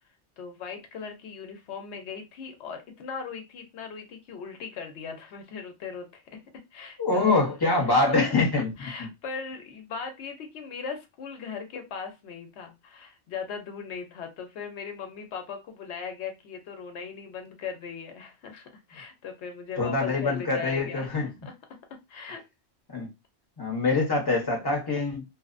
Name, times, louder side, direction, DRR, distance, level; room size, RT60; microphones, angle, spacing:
voice 1, 0.4-6.4 6.7-7.4 7.7-8.2 8.8-21.5 22.1-22.4, left 6 dB, 75° left, 0.9 m, -39 dB
voice 2, 7.0-9.1 19.8-21.3 22.9-23.1 23.6-25.2, left 3 dB, 25° left, 0.6 m, -25 dB
2.7 x 2.0 x 2.4 m
omnidirectional pair, 1.2 m